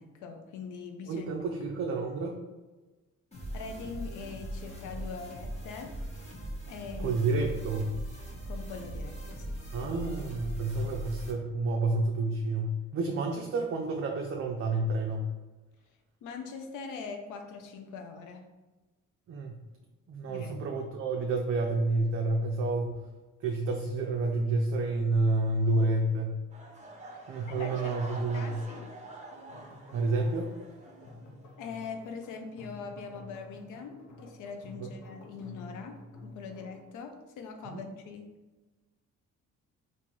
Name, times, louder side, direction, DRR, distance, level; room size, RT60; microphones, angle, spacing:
voice 1, 0.0-1.3 3.5-5.9 6.7-7.2 8.5-9.6 16.2-18.5 20.2-20.5 27.1-27.9 28.3-28.9 31.6-34.0 34.2-38.3, left 5 dB, 85° left, 5 dB, 0.6 m, -42 dB
voice 2, 1.1-2.4 7.0-7.9 9.7-15.3 19.3-19.6 20.1-23.0 23.4-26.4 27.3-28.6 29.9-30.5 34.8-34.9 37.6-37.8, right 2 dB, 50° right, 1 dB, 0.5 m, -29 dB
sound 1, 3.3-11.3, right 1 dB, 20° left, 1.0 m, -40 dB
sound 2, 26.5-31.5 31.8-32.2 32.7-32.8, right 2 dB, 25° right, 0.8 m, -46 dB
sound 3, 29.3-36.9, left 2 dB, 65° left, 0.9 m, -50 dB
3.7 x 2.5 x 3.0 m, 1.2 s
cardioid pair, 90°, 30 cm